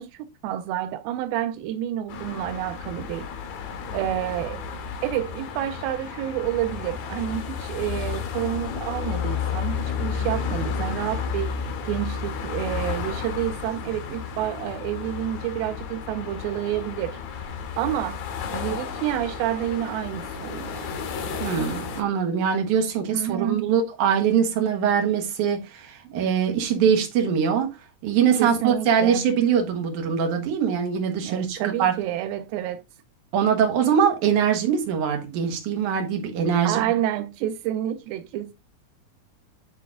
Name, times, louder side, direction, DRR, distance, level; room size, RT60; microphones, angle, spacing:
voice 1, 0.0-3.3 3.9-4.6 5.0-11.6 11.8-18.2 18.5-20.9 23.1-23.6 26.1-26.2 28.4-29.3 31.2-32.8 36.6-38.5, right 12 dB, 90° right, 2.4 m, -29 dB
sound 1, 2.1-22.0, left 6 dB, 80° left, 3.3 m, -32 dB
voice 2, 21.4-27.7 28.0-31.9 33.3-36.8, right 7 dB, 65° right, 2.7 m, -22 dB
10.0 x 3.4 x 3.7 m
omnidirectional pair, 4.1 m